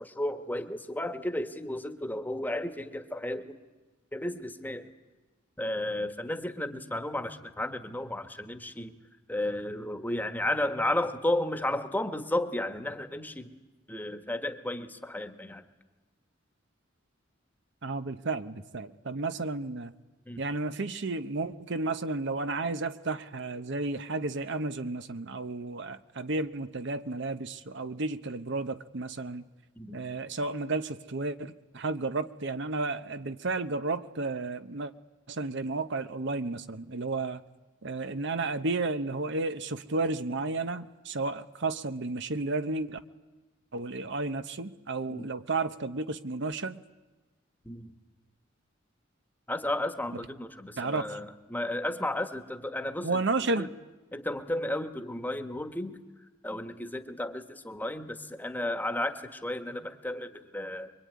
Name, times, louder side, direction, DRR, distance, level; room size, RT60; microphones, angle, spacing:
voice 1, 0.0-3.6 4.1-4.9 5.6-8.9 9.3-13.5 13.9-15.6 20.3-20.4 29.7-30.0 45.1-45.3 47.6-47.9 49.5-53.7 54.1-56.0 56.4-60.9, left 1 dB, 10° left, 8 dB, 1.4 m, -33 dB
voice 2, 17.8-19.9 20.4-29.5 29.9-34.9 35.3-37.4 37.8-43.0 43.7-46.8 50.8-51.1 53.0-53.7, right 3 dB, 65° right, 10 dB, 0.9 m, -32 dB
24.5 x 23.0 x 9.5 m, 1.2 s
head